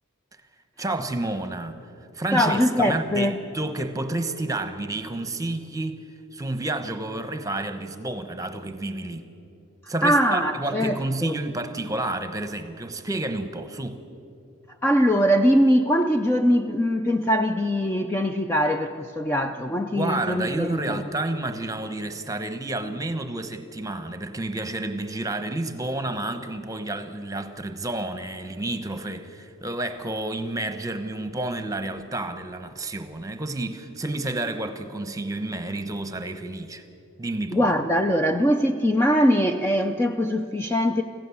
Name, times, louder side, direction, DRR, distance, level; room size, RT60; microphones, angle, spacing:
voice 1, 0.8-1.8 2.1-6.0 6.3-9.2 9.9-14.0 19.9-36.8 37.2-37.7, right 2 dB, 15° right, 9 dB, 1.0 m, -30 dB
voice 2, 2.3-3.4 10.0-11.3 14.8-21.0 37.5-41.0, equal, 10° left, 5 dB, 0.5 m, -22 dB
25.5 x 15.5 x 7.1 m, 2.7 s
head